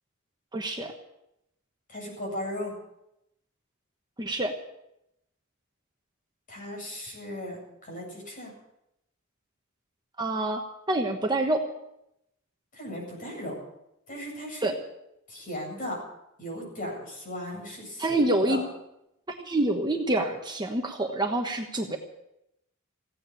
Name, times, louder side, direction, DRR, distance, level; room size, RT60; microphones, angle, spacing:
voice 1, 0.5-0.9 4.2-4.5 10.2-10.6 10.9-11.6 14.6-14.7 18.0-18.6 19.3-22.0, right 2 dB, 20° right, 3 dB, 1.2 m, -27 dB
voice 2, 1.9-2.7 6.5-8.5 12.7-13.5 14.1-14.7 15.3-16.0 16.4-18.2 18.5-18.6, left 1 dB, 40° left, -1 dB, 8.0 m, -37 dB
16.0 x 9.8 x 8.9 m, 0.84 s
head